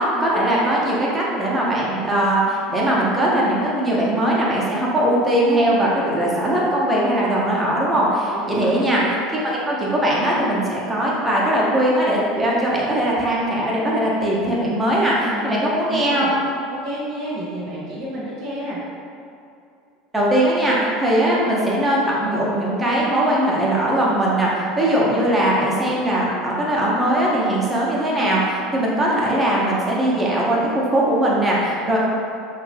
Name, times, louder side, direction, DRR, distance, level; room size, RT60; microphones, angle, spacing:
voice 1, 0.0-9.0 9.3-16.3 20.1-32.0, right 1 dB, 15° right, -5 dB, 0.8 m, -20 dB
voice 2, 8.3-8.7 15.3-15.6 15.9-16.3 16.8-18.8 31.8-32.0, right 1 dB, 70° right, -9 dB, 0.7 m, -30 dB
2.8 x 2.2 x 3.2 m, 2.5 s
hypercardioid pair, 80°, 0 cm